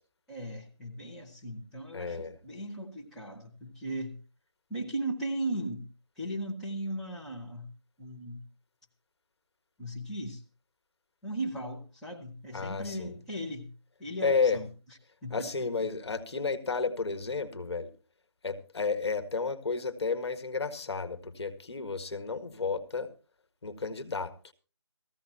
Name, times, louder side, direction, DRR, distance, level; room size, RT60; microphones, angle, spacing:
voice 1, 0.3-4.1 4.7-5.9 6.1-7.7 8.0-8.4 9.8-10.4 11.2-13.7 14.0-14.7 15.2-15.5, right 1 dB, ahead, -8 dB, 1.2 m, -37 dB
voice 2, 1.9-2.4 12.5-13.1 14.2-14.6 15.3-17.9 18.4-23.1 23.6-24.3, left 4 dB, 55° left, 9 dB, 1.7 m, -32 dB
18.5 x 15.0 x 2.9 m, 0.33 s
figure-of-eight pair, 165°, 16 cm